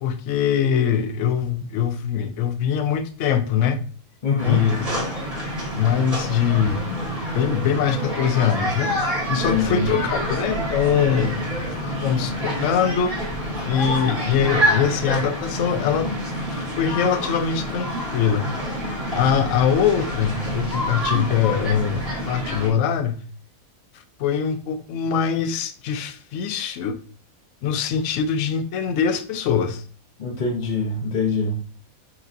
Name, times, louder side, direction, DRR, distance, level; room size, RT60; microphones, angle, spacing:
voice 1, 0.0-3.8 4.4-4.9 5.7-8.9 9.3-13.1 13.7-16.1 16.5-18.5 19.1-23.2 24.2-27.0 27.6-29.8, left 8 dB, 70° left, 0.9 m, -23 dB
voice 2, 4.2-4.6 9.3-9.9 30.2-31.6, left 4 dB, 45° left, 0.6 m, -24 dB
sound 1, 4.4-22.7, equal, 25° right, 2.0 m, -27 dB
5.4 x 3.2 x 2.6 m
omnidirectional pair, 1.5 m